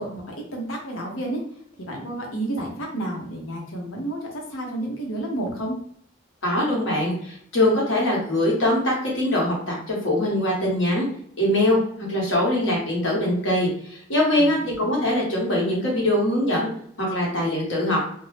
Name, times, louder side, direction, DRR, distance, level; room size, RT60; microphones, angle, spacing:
voice 1, 0.0-1.4 1.8-5.8 14.4-14.8, right 1 dB, 85° left, -1 dB, 0.9 m, -31 dB
voice 2, 6.4-11.1 11.4-11.8 12.1-16.7 17.0-18.0, left 1 dB, 70° left, -4 dB, 1.2 m, -22 dB
2.7 x 2.1 x 3.2 m, 0.64 s
head